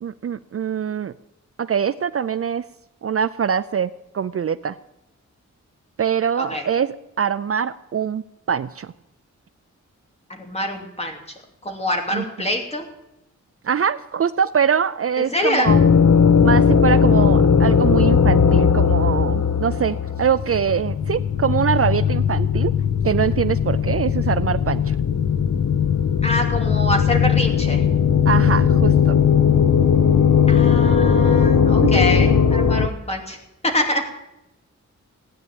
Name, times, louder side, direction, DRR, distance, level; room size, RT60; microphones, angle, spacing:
voice 1, 0.0-1.1 1.6-2.6 3.0-3.9 4.1-4.8 6.0-8.9 12.1-12.2 13.6-15.8 16.4-22.7 23.0-24.9 28.3-29.2 31.9-32.0, right 7 dB, 50° right, 14 dB, 0.5 m, -23 dB
voice 2, 6.4-6.7 10.3-11.2 11.6-12.9 15.2-15.7 26.2-27.8 30.5-33.4 33.6-34.0, left 1 dB, 20° left, 2 dB, 2.8 m, -25 dB
sound 1, 15.6-32.9, left 7 dB, 65° left, 1.0 m, -17 dB
16.5 x 9.5 x 8.8 m, 0.90 s
wide cardioid pair, 145°, 30 cm